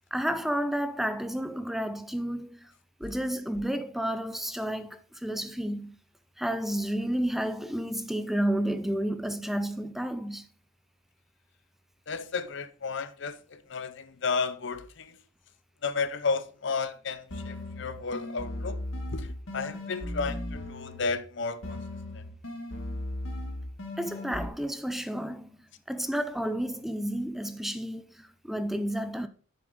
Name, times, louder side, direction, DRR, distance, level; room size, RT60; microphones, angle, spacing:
voice 1, 0.1-2.7 3.0-6.0 6.4-10.5 24.0-25.6 25.9-29.3, equal, ahead, 0.4 m, -31 dB
voice 2, 12.1-15.1 15.8-18.8 19.1-21.8, left 4 dB, 65° left, 0.7 m, -33 dB
sound 1, 17.3-21.3 21.6-24.5, left 1 dB, 85° left, 1.6 m, -37 dB
7.0 x 6.8 x 3.6 m
head